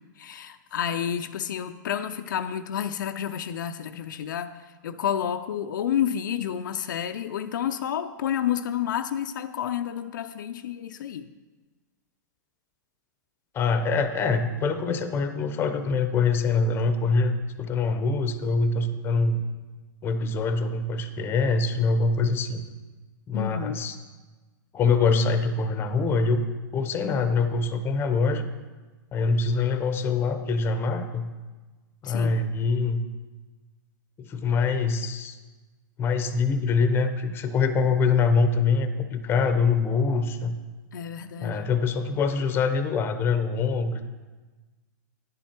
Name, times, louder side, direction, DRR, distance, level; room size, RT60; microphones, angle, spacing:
voice 1, 0.2-4.5 4.8-11.3 23.3-23.9 32.0-32.4 40.9-41.7, left 9 dB, 70° left, 8 dB, 0.5 m, -30 dB
voice 2, 13.5-19.4 20.0-22.6 23.3-24.0 24.7-26.4 26.7-28.5 29.1-31.3 32.0-33.0 34.2-35.4 36.0-40.5 41.4-44.0, left 4 dB, 20° left, 10 dB, 0.7 m, -24 dB
9.9 x 7.3 x 4.4 m, 1.3 s
hypercardioid pair, 130°, 11 cm